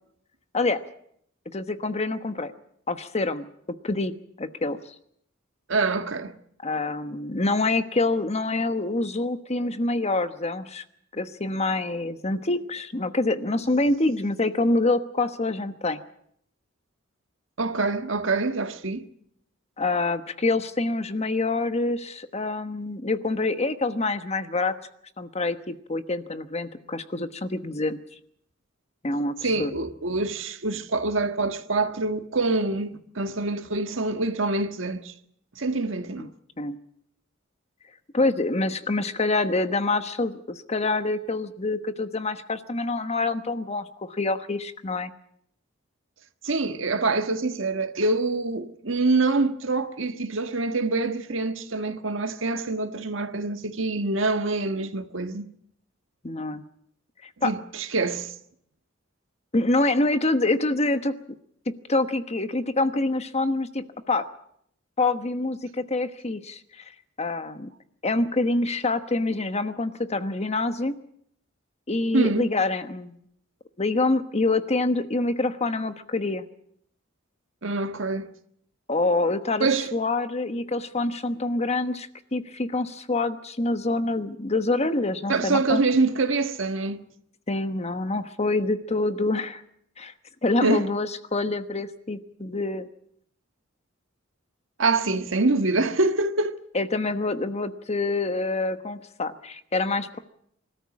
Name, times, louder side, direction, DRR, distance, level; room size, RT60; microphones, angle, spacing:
voice 1, 1.5-2.5 2.9-3.5 3.8-4.8 6.6-10.8 11.1-16.0 19.8-24.7 25.2-28.0 29.0-29.7 36.2-36.3 36.6-36.8 38.1-45.1 56.2-56.6 57.4-57.5 59.5-61.2 61.9-64.2 65.0-66.6 67.2-67.7 68.0-71.0 71.9-73.2 73.8-76.5 78.9-85.8 87.5-89.6 90.0-90.1 90.4-92.9 96.7-100.2, left 2 dB, 35° left, 1.2 m, -26 dB
voice 2, 5.7-6.3 17.6-19.1 29.4-35.1 35.6-36.3 46.4-55.4 57.4-58.3 72.1-72.5 77.6-78.3 79.6-79.9 85.3-87.0 90.6-90.9 94.8-96.6, right 3 dB, 70° right, 1.6 m, -25 dB
25.5 x 13.5 x 8.6 m
head